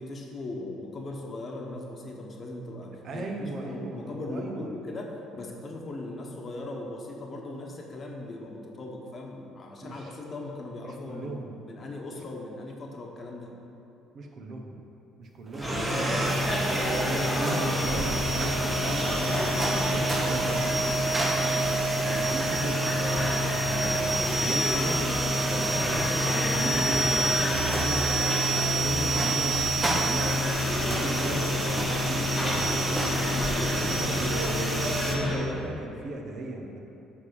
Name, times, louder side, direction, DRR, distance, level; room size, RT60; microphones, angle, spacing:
voice 1, 0.0-11.3 11.6-13.5 32.2-32.4 33.5-34.5, left 2 dB, 35° left, 0 dB, 1.2 m, -39 dB
voice 2, 3.0-4.7 9.8-10.2 10.8-11.6 12.1-12.2 14.1-14.8 15.2-16.2 17.0-19.4 19.9-20.7 22.0-25.0 25.4-28.0 28.5-33.1 33.7-36.8, right 2 dB, 50° right, 2 dB, 1.1 m, -37 dB
sound 1, 15.5-35.2, right 2 dB, 20° right, 1.1 m, -29 dB
sound 2, 15.6-35.4, left 2 dB, 5° right, 1.5 m, -29 dB
9.1 x 3.7 x 6.9 m, 2.9 s
cardioid pair, 110°, 0 cm